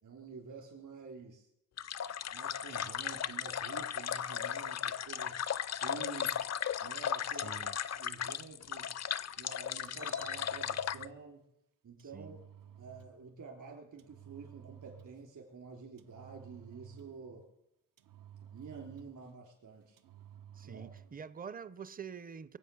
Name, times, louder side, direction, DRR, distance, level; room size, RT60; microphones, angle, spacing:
voice 1, 0.0-1.5 2.3-5.5 5.8-6.4 6.8-7.6 7.9-8.9 9.4-11.4 11.8-12.4 12.8-17.4 18.5-20.0 20.6-20.9, right 5 dB, 70° right, 3.3 m, -49 dB
sound 1, 1.8-11.0, left 9 dB, 55° left, 0.5 m, -36 dB
voice 2, 7.3-7.8 12.0-12.4 20.5-22.6, right 6 dB, 25° right, 0.5 m, -46 dB
Engine, 9.7-11.2 12.0-13.2 14.0-15.3 16.0-17.3 18.0-19.3 20.0-21.2, right 9 dB, 85° right, 0.8 m, -54 dB
23.0 x 8.2 x 6.9 m
wide cardioid pair, 160°, 32 cm